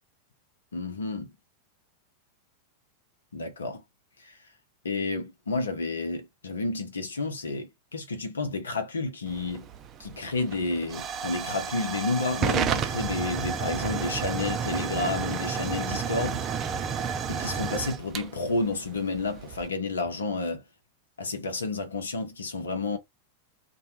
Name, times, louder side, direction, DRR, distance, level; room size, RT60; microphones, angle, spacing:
voice 1, 0.7-1.3 3.3-3.8 4.2-4.4 4.8-9.7 10.0-16.4 17.3-20.6 21.2-23.0, left 3 dB, 85° left, 0.7 m, -30 dB
Hiss / Fire / Tick, 9.3-19.7, right 6 dB, 35° right, 0.4 m, -31 dB
2.3 x 2.1 x 2.9 m
hypercardioid pair, 95°, 0 cm